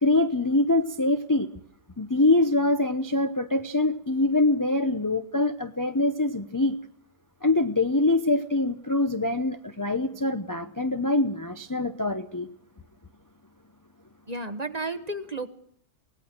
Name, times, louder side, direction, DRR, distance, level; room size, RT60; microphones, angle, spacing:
voice 1, 0.0-1.5 2.0-6.8 7.4-12.5, left 2 dB, 25° left, 0.4 m, -24 dB
voice 2, 14.3-15.5, right 2 dB, 25° right, 1.1 m, -32 dB
24.0 x 18.0 x 6.1 m
omnidirectional pair, 1.9 m